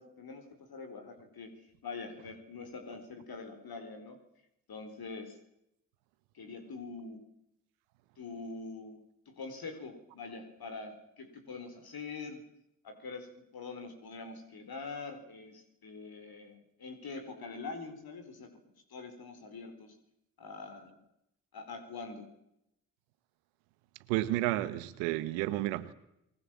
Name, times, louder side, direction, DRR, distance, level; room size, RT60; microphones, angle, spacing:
voice 1, 0.0-4.2 4.7-5.4 6.3-7.3 8.2-9.0 9.3-12.5 12.8-18.6 18.9-20.0 20.4-21.0 21.5-22.3, left 4 dB, 55° left, 4.3 m, -44 dB
voice 2, 24.1-25.9, right 16 dB, 90° right, 1.4 m, -31 dB
26.5 x 20.5 x 7.5 m
hypercardioid pair, 50°, 43 cm